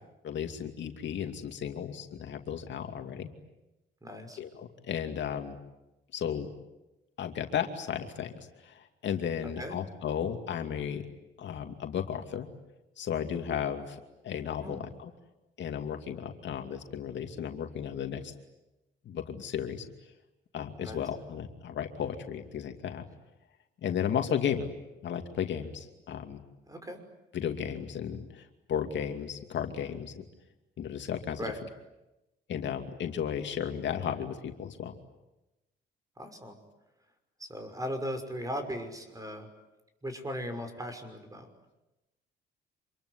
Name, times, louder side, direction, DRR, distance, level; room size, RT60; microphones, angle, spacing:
voice 1, 0.2-3.3 4.4-5.6 6.1-6.5 7.2-8.3 8.6-11.0 11.4-12.5 13.0-14.0 14.2-15.1 15.6-18.3 19.1-19.8 20.5-23.0 23.8-24.7 25.0-26.4 27.3-30.3 30.8-31.4 32.5-35.0, left 8 dB, 65° left, 5 dB, 2.5 m, -34 dB
voice 2, 4.0-4.4 9.6-9.8 14.6-14.8 20.8-21.0 26.7-27.0 31.4-31.6 36.2-36.5 37.4-39.5 40.0-41.5, equal, 15° right, 7 dB, 6.0 m, -38 dB
27.0 x 22.5 x 9.8 m, 0.97 s
cardioid pair, 90°, 20 cm